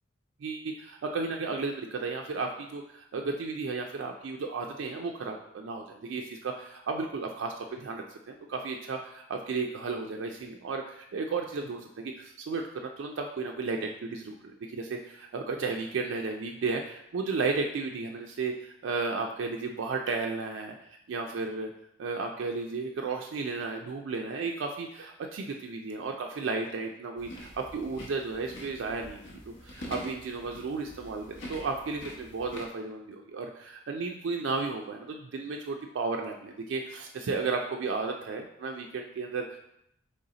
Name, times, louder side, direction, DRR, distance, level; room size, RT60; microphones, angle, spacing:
voice 1, 0.4-14.4 14.7-21.7 22.0-39.6, right 4 dB, 70° right, 2 dB, 0.4 m, -34 dB
sound 1, 27.2-32.6, equal, 70° left, 0.9 m, -45 dB
4.0 x 3.4 x 3.8 m, 0.79 s
head